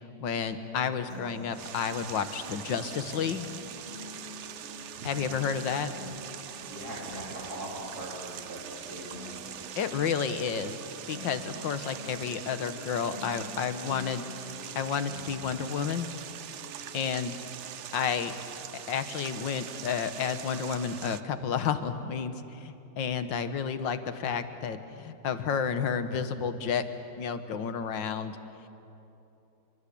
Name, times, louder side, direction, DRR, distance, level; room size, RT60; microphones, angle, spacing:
voice 1, 0.2-3.5 5.0-5.9 9.8-10.8 11.1-14.3 14.8-16.1 16.9-17.3 17.9-18.3 18.7-26.8 27.2-28.4, left 7 dB, 70° left, 10 dB, 1.9 m, -31 dB
sound 1, 1.1-17.1, left 2 dB, 35° left, 3.6 m, -47 dB
sound 2, 1.5-21.2, right 9 dB, 80° right, 0.6 m, -43 dB
voice 2, 6.6-9.1, right 1 dB, 50° right, -5 dB, 3.9 m, -40 dB
28.0 x 24.0 x 8.5 m, 2.9 s
omnidirectional pair, 2.2 m